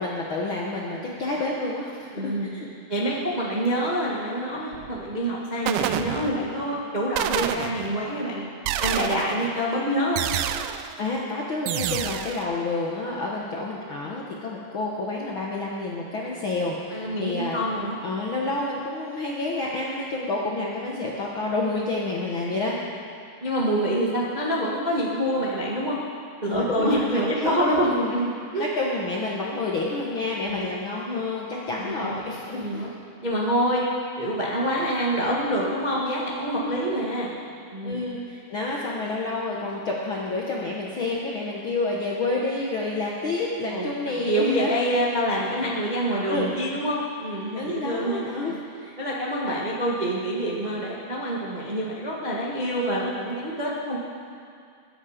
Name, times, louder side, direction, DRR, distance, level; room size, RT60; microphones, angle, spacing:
voice 1, 0.0-2.7 11.0-17.7 18.0-22.8 26.5-28.1 28.6-32.9 36.6-36.8 37.8-44.7 45.5-45.7 46.3-46.6 47.6-49.0, left 2 dB, 65° left, -3 dB, 1.2 m, -29 dB
voice 2, 2.1-2.5 2.9-8.5 8.8-10.2 16.9-18.0 23.4-26.0 26.4-28.3 28.5-28.6 30.4-30.6 31.8-32.3 32.6-32.9 33.2-33.8 34.2-37.3 37.7-38.0 43.7-43.9 44.2-48.6 49.0-54.0, equal, 65° right, -5 dB, 0.4 m, -26 dB
sound 1, 4.7-5.1 5.7-6.6 7.2-8.1 8.7-9.5 10.2-11.0 11.7-12.4, right 11 dB, 85° right, 2.3 m, -28 dB
21.5 x 9.7 x 5.1 m, 2.4 s
omnidirectional pair, 4.0 m